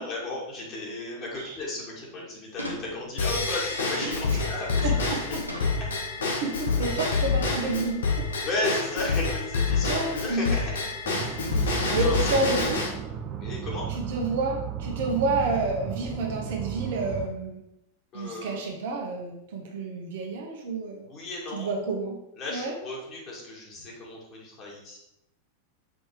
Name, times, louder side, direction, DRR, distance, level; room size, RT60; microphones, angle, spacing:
voice 1, 0.0-5.4 5.8-5.9 7.1-7.2 8.4-10.8 11.4-12.5 13.4-13.9 18.1-18.6 21.0-21.7 22.4-25.0, left 2 dB, 35° left, -4 dB, 2.6 m, -35 dB
sound 1, 2.6-3.5 4.0-6.5 6.8-7.1 8.2-8.8 9.1-9.5 10.4-11.1, equal, 90° right, 1.1 m, -42 dB
Drum kit / Drum / Bell, 3.2-12.9, left 4 dB, 65° left, 1.4 m, -27 dB
voice 2, 4.8-5.7 6.4-8.0 9.9-10.5 11.9-12.8 13.9-17.6 18.1-21.1 21.5-22.2 22.5-22.7, right 3 dB, 55° right, 1 dB, 1.4 m, -29 dB
sound 2, 11.1-17.3, right 8 dB, 30° right, 0.8 m, -34 dB
6.2 x 4.5 x 5.0 m, 0.83 s
figure-of-eight pair, 90°, 0 cm